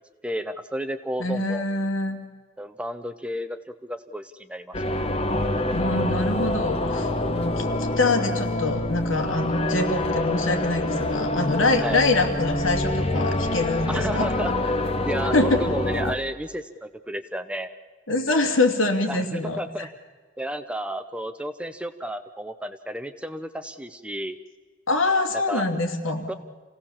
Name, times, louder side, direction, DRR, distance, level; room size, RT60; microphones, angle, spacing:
voice 1, 0.2-1.7 2.6-4.8 7.3-7.5 11.8-12.0 13.9-14.5 15.0-17.7 19.1-19.9 20.4-24.4 25.3-25.6 26.3-26.4, equal, 5° right, 10 dB, 0.7 m, -32 dB
voice 2, 1.2-2.2 5.7-14.3 15.3-15.6 18.1-19.9 24.9-26.4, left 2 dB, 85° left, 4 dB, 2.7 m, -24 dB
sound 1, 4.7-16.1, left 1 dB, 30° left, 1.2 m, -26 dB
27.5 x 17.5 x 7.3 m, 1.4 s
head